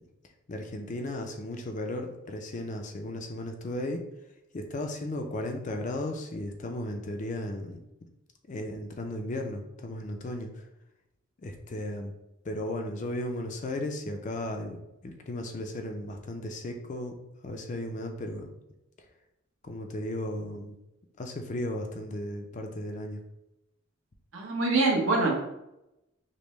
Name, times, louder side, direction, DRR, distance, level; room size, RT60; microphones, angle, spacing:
voice 1, 0.5-4.0 4.5-7.8 8.5-10.6 11.4-12.1 12.4-17.2 17.4-18.5 19.6-20.8 21.2-23.2, left 1 dB, 35° left, 4 dB, 0.4 m, -35 dB
voice 2, 24.3-25.4, right 3 dB, 70° right, -2 dB, 1.0 m, -24 dB
5.2 x 2.1 x 3.1 m, 0.89 s
head